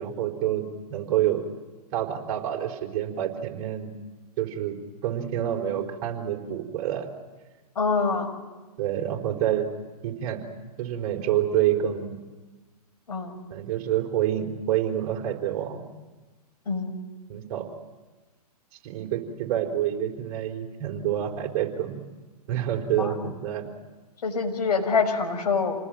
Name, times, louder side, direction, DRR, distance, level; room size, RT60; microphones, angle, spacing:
voice 1, 0.0-1.4 1.9-3.9 4.4-4.8 5.0-7.1 8.8-9.7 10.0-10.4 10.8-12.2 13.5-15.9 17.3-17.7 18.8-22.0 22.5-23.6, right 11 dB, 40° right, 2 dB, 4.6 m, -27 dB
voice 2, 7.8-8.3 13.1-13.4 16.7-17.0 23.0-23.1 24.2-25.8, left 4 dB, 80° left, 4 dB, 6.1 m, -25 dB
28.0 x 20.0 x 9.2 m, 1.3 s
hypercardioid pair, 130°, 20 cm